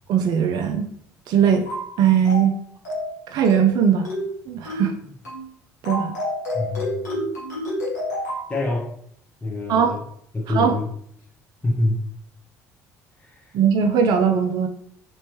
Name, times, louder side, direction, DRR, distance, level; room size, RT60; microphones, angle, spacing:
voice 1, 0.1-0.9 1.3-1.7 2.0-2.5 3.3-4.1 4.5-4.9 5.8-6.1 9.7-10.0 10.5-10.8 13.5-14.7, right 7 dB, 55° right, 5 dB, 0.4 m, -19 dB
sound 1, 1.7-1.9 2.3-2.5 2.9-3.1 3.5-3.7 4.1-4.3 4.7-4.9 5.3-5.5 5.9-8.5, left 1 dB, 90° left, 1.3 m, -29 dB
voice 2, 6.5-7.1 8.5-8.9 9.4-10.0 10.3-10.9 11.6-12.0 13.2-13.5, left 2 dB, 15° left, -4 dB, 1.0 m, -26 dB
4.2 x 3.0 x 3.1 m, 0.67 s
hypercardioid pair, 60°, 9 cm